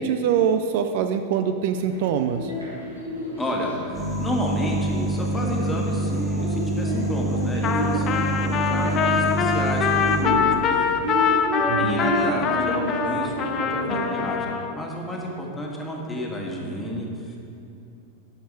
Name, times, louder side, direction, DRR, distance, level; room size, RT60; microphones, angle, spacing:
voice 1, 0.0-2.5 11.7-12.1, right 8 dB, 50° right, 8 dB, 0.4 m, -24 dB
sound 1, 1.7-14.3, equal, 85° right, 2.3 m, -31 dB
voice 2, 3.4-10.9 11.8-17.4, equal, 10° left, -2 dB, 1.7 m, -31 dB
sound 2, 3.9-10.3, right 1 dB, 20° right, 1.7 m, -26 dB
Trumpet, 7.6-14.7, left 7 dB, 30° left, 0.6 m, -24 dB
12.0 x 6.0 x 4.7 m, 2.7 s
figure-of-eight pair, 90°, 0 cm